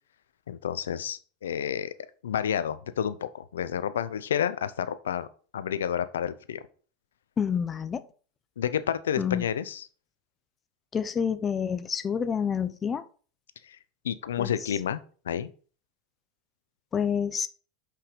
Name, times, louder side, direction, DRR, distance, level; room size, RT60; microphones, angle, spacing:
voice 1, 0.5-1.9 2.2-5.3 5.5-6.6 8.6-9.9 13.6-13.8 14.0-15.5, left 9 dB, 85° left, 0.6 m, -30 dB
voice 2, 7.4-8.0 9.2-9.4 10.9-13.0 14.4-14.5 16.9-17.5, left 7 dB, 30° left, 0.7 m, -28 dB
5.6 x 5.2 x 5.2 m
hypercardioid pair, 90°, 0 cm